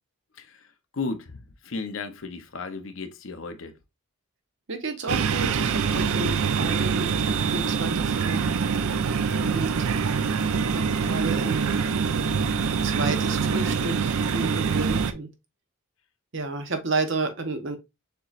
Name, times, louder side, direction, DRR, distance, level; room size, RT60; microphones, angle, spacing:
voice 1, 0.3-0.7 0.9-3.8, left 3 dB, 65° left, 0.7 m, -34 dB
voice 2, 4.7-8.4 9.4-9.8 10.7-11.7 12.1-12.4 12.8-15.3 16.3-17.8, right 3 dB, 60° right, 0.9 m, -31 dB
sound 1, 5.1-15.1, right 5 dB, 90° right, 0.5 m, -25 dB
6.6 x 3.0 x 2.4 m
head